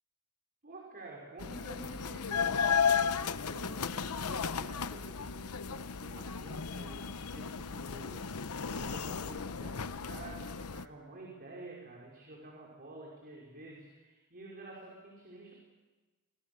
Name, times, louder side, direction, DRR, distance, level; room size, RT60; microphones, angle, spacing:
voice 1, 0.6-2.7 2.9-8.3 8.7-15.5, right 2 dB, 45° right, -2 dB, 5.1 m, -50 dB
sound 1, 1.4-10.9, left 6 dB, 90° left, 0.9 m, -34 dB
30.0 x 26.5 x 6.9 m, 1.2 s
head